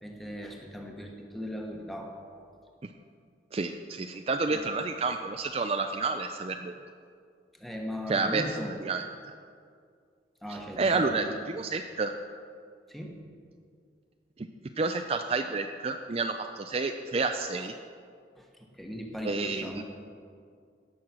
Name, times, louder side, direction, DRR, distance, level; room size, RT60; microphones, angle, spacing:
voice 1, 0.0-2.5 4.5-4.7 7.5-8.8 10.4-11.3 12.9-13.2 18.4-19.8, equal, ahead, 1 dB, 1.2 m, -38 dB
voice 2, 3.5-6.7 8.1-8.4 8.8-9.0 10.8-12.1 14.4-14.5 14.8-17.7 19.2-19.8, right 3 dB, 35° right, 6 dB, 0.4 m, -29 dB
17.0 x 6.4 x 6.0 m, 2.3 s
head